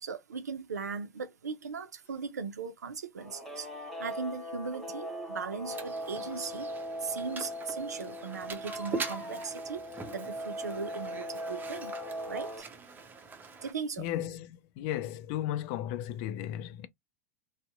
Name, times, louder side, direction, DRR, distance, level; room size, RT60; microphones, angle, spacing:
voice 1, 0.0-3.7 4.0-6.7 7.0-12.0 12.3-12.7 13.6-14.1, right 5 dB, 90° right, 0.5 m, -38 dB
Crying sobbing, 2.0-2.2 4.6-4.8 6.4-6.5 7.0-7.1 7.4-7.5 8.5-9.6 10.5-10.9 11.4-11.5, left 1 dB, 25° left, 1.1 m, -49 dB
Guitar, 3.2-12.6, equal, 5° left, 1.2 m, -39 dB
Mechanisms, 5.7-13.7, right 4 dB, 20° right, 0.6 m, -43 dB
voice 2, 14.0-16.9, left 12 dB, 55° left, 0.4 m, -35 dB
2.7 x 2.1 x 2.3 m
hypercardioid pair, 90°, 9 cm